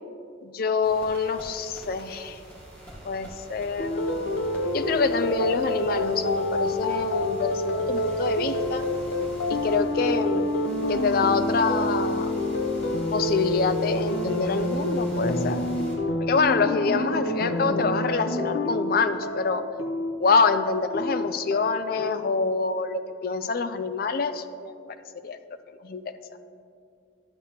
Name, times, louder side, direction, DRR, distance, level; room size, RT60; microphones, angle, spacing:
voice 1, 0.4-2.4 3.0-4.2 4.7-8.8 9.5-10.5 10.9-12.5 13.1-15.6 16.3-19.6 20.2-24.7 25.2-25.4 25.8-26.0, left 4 dB, 45° left, 10 dB, 0.4 m, -26 dB
sound 1, 0.8-16.0, right 1 dB, 5° left, 1.2 m, -43 dB
sound 2, 3.8-22.1, left 1 dB, 90° left, 0.7 m, -27 dB
11.0 x 7.3 x 2.8 m, 2.5 s
head